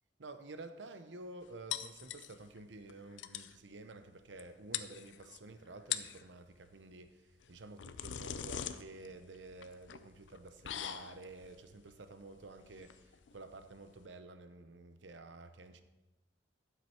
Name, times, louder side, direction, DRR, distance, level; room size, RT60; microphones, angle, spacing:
voice 1, 0.2-15.8, right 2 dB, 80° right, 0.8 m, -51 dB
sound 1, 1.7-2.6 2.9-3.0 3.2-3.6 4.4-4.5 4.7-5.4 5.8-6.2 7.4-14.1, left 10 dB, 85° left, 0.5 m, -42 dB
12.0 x 7.4 x 4.4 m
head